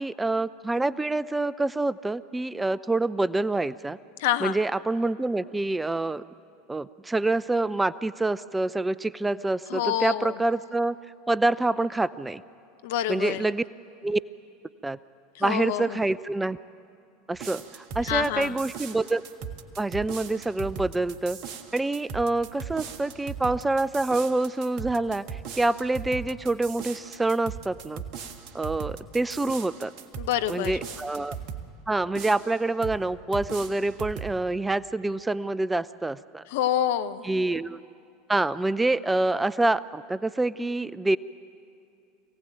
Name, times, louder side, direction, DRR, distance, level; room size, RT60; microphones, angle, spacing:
voice 1, 0.0-4.0 4.4-6.2 6.7-11.0 11.3-12.4 13.1-13.6 14.0-14.2 14.8-15.0 15.4-16.6 17.3-19.2 19.8-21.4 21.7-28.0 28.5-29.9 30.5-31.4 31.9-36.4 37.2-37.8 38.3-41.2, right 2 dB, 10° right, 17 dB, 0.6 m, -26 dB
voice 2, 4.2-4.5 9.7-10.3 12.8-13.4 15.4-15.9 18.1-18.5 30.2-30.7 36.5-37.2, left 11 dB, 65° left, 11 dB, 1.0 m, -27 dB
sound 1, 17.3-31.7 32.1-33.0 33.3-34.4, right 7 dB, 50° right, 1.5 m, -39 dB
25.5 x 17.0 x 9.0 m, 2.5 s
hypercardioid pair, 80°, 0 cm